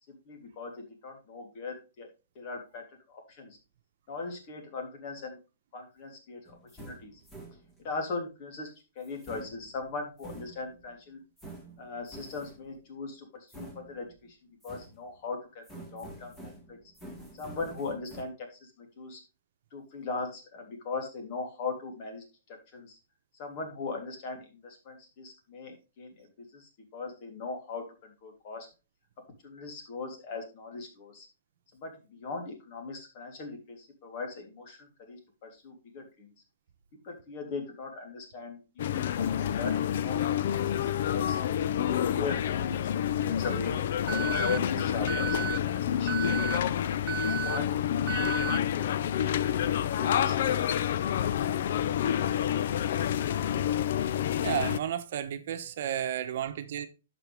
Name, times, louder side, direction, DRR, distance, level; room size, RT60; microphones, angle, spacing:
voice 1, 0.1-2.1 2.3-3.6 4.1-5.4 5.7-7.1 7.8-8.7 8.9-11.2 11.8-13.3 13.5-14.1 14.6-16.8 17.3-19.2 19.7-22.2 22.7-23.0 23.3-28.7 29.4-31.3 31.7-36.3 37.0-38.6 38.9-39.8 40.0-41.4 41.9-42.8 43.2-43.8 44.2-46.7 47.2-48.8 49.1-50.7 51.0-51.2, left 4 dB, 45° left, 3.2 m, -39 dB
sound 1, 6.5-8.0 9.0-10.9 11.4-12.8 13.5-14.3 14.6-15.3 15.6-18.2, right 2 dB, 10° left, 2.1 m, -48 dB
sound 2, 38.8-54.8, left 10 dB, 60° left, 0.5 m, -28 dB
Alarm, 44.1-44.6 45.1-45.6 46.1-46.6 47.1-47.6 48.1-48.6, right 12 dB, 35° right, 0.4 m, -33 dB
voice 2, 54.4-56.9, right 10 dB, 60° right, 1.0 m, -32 dB
11.0 x 6.0 x 3.5 m
hypercardioid pair, 140°, 0 cm